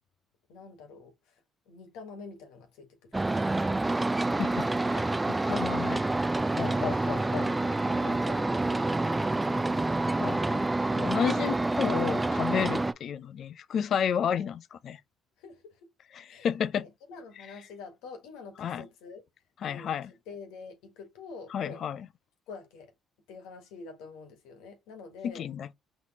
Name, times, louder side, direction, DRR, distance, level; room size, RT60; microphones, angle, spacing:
voice 1, 0.5-1.4 1.7-3.9 5.4-5.6 6.6-9.8 15.4-15.8 16.3-16.5 16.8-19.2 19.6-21.9 22.5-22.9 23.3-25.5, left 4 dB, 85° left, 1.3 m, -47 dB
sound 1, 3.1-12.9, right 2 dB, 15° right, 0.3 m, -28 dB
voice 2, 4.4-5.0 5.5-6.0 6.6-7.5 10.2-10.7 10.9-15.0 16.2-16.9 18.6-18.8 19.6-20.1 21.5-22.1 25.2-25.7, left 8 dB, 60° left, 0.4 m, -32 dB
4.1 x 3.1 x 2.9 m
supercardioid pair, 80°, 0 cm